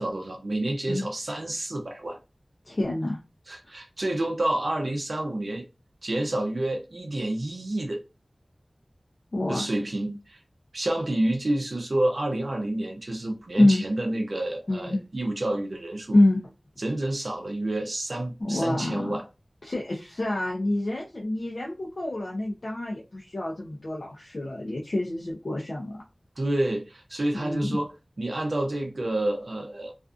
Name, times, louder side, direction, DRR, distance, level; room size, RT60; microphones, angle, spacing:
voice 1, 0.0-2.2 3.5-5.7 6.0-8.0 9.5-10.4 10.7-16.2 16.8-19.3 26.4-27.9 28.2-29.9, right 1 dB, 75° right, 0.4 m, -29 dB
voice 2, 2.7-3.2 9.3-9.6 13.6-13.8 14.7-15.0 16.1-16.4 18.4-19.2 19.6-26.0 27.3-27.8, left 1 dB, 75° left, 0.6 m, -26 dB
2.4 x 2.4 x 2.4 m
wide cardioid pair, 45°, 0 cm